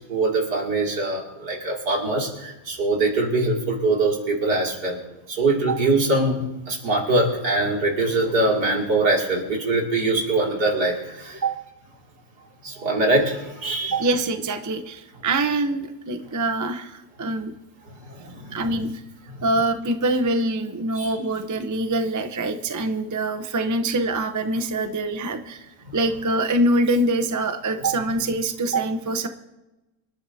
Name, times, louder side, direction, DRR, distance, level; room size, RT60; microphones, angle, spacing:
voice 1, 0.1-5.0 5.3-11.4 12.6-13.9 18.0-18.6 19.3-19.4 20.9-21.1 25.8-26.0, right 2 dB, 75° right, -2 dB, 3.3 m, -23 dB
voice 2, 13.9-17.5 18.5-19.0 19.4-25.7 25.9-29.3, right 2 dB, 30° right, 7 dB, 0.3 m, -24 dB
26.5 x 11.5 x 2.8 m, 1.0 s
omnidirectional pair, 1.8 m